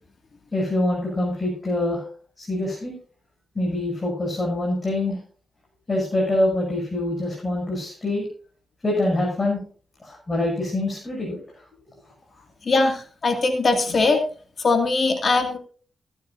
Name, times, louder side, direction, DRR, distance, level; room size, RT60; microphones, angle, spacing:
voice 1, 0.5-2.0 2.4-2.9 3.5-5.2 5.9-8.3 8.8-9.6 10.0-11.4, left 1 dB, 30° left, -3 dB, 7.6 m, -25 dB
voice 2, 12.6-14.2 14.6-15.6, left 3 dB, 50° left, 5 dB, 2.4 m, -21 dB
19.0 x 11.5 x 2.7 m, 0.42 s
cardioid pair, 75°, 0 cm